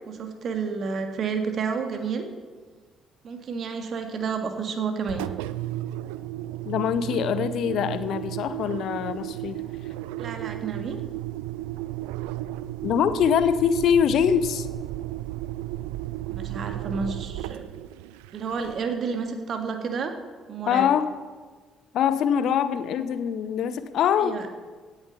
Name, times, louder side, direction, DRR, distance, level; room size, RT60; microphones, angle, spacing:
voice 1, 0.1-2.3 3.2-5.2 10.2-11.0 16.3-17.6 18.3-20.1 20.5-20.9 24.2-24.5, right 5 dB, 45° right, 6 dB, 1.8 m, -30 dB
Engine, 5.0-19.0, right 15 dB, 65° right, 0.4 m, -34 dB
voice 2, 6.6-9.6 12.8-14.7 20.6-21.1 21.9-24.5, left 8 dB, 55° left, 14 dB, 0.8 m, -23 dB
17.0 x 9.9 x 4.2 m, 1.4 s
figure-of-eight pair, 45°, 0 cm